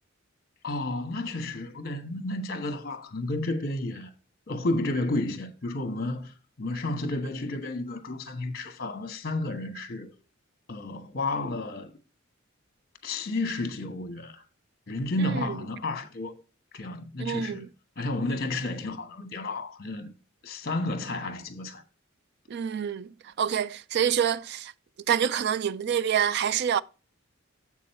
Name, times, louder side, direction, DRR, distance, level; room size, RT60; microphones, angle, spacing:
voice 1, 0.6-4.1 4.5-10.1 10.7-11.9 13.0-14.4 14.9-16.4 16.7-17.7 18.0-20.1 20.4-21.8, left 2 dB, 45° left, 1.3 m, -32 dB
voice 2, 15.2-15.6 17.2-17.7 22.5-24.7 25.1-26.8, right 8 dB, 50° right, 0.3 m, -27 dB
7.5 x 6.4 x 4.3 m
head